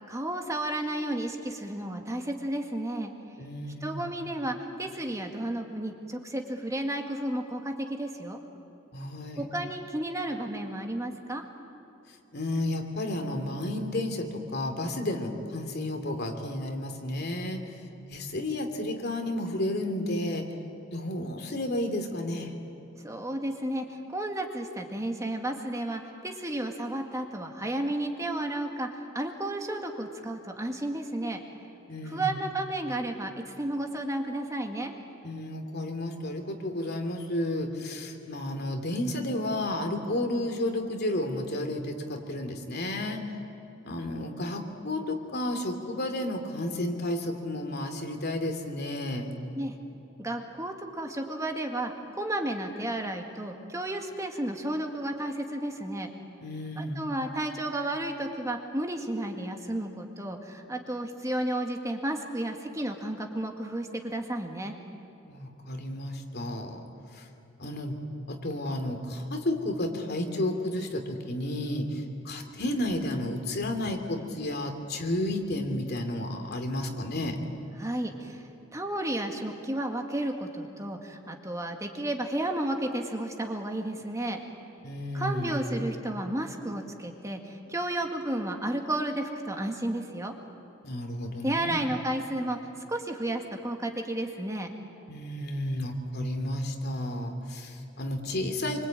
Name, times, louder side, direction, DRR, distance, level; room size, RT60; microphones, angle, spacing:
voice 1, 0.1-3.1 3.8-8.4 9.4-11.4 23.0-31.4 32.0-34.9 49.5-49.7 50.2-56.1 56.8-64.7 77.8-84.4 85.1-90.3 91.4-92.6 92.9-94.7, right 1 dB, 15° right, 3 dB, 2.0 m, -32 dB
voice 2, 3.4-4.1 8.9-9.4 12.3-17.6 18.1-20.5 20.9-22.5 31.9-32.4 35.2-43.3 43.8-49.3 56.4-57.0 65.3-66.8 67.1-67.2 67.6-68.0 68.3-77.4 84.8-85.6 90.8-91.9 95.1-98.9, left 1 dB, 55° left, 5 dB, 2.8 m, -32 dB
27.0 x 24.5 x 9.0 m, 3.0 s
head